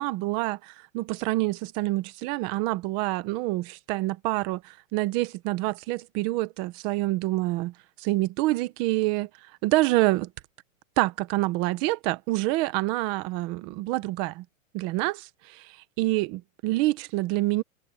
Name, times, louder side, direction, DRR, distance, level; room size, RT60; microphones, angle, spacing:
voice 1, 0.0-9.3 9.6-10.3 11.0-14.4 14.7-17.6, right 19 dB, 15° right, 0.3 m, -27 dB
hypercardioid pair, 145°, 41 cm